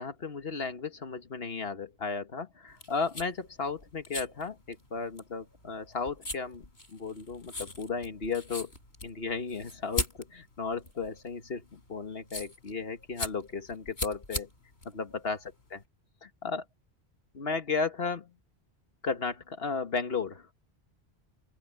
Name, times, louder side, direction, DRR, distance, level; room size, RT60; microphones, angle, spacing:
voice 1, 0.0-6.7 6.9-8.7 9.0-14.5 14.9-15.8 16.2-16.6 17.3-18.3 19.0-20.5, left 4 dB, 65° left, 1.8 m, -34 dB
sound 1, 2.7-15.8, left 2 dB, 80° left, 5.0 m, -40 dB
open air
omnidirectional pair, 1.1 m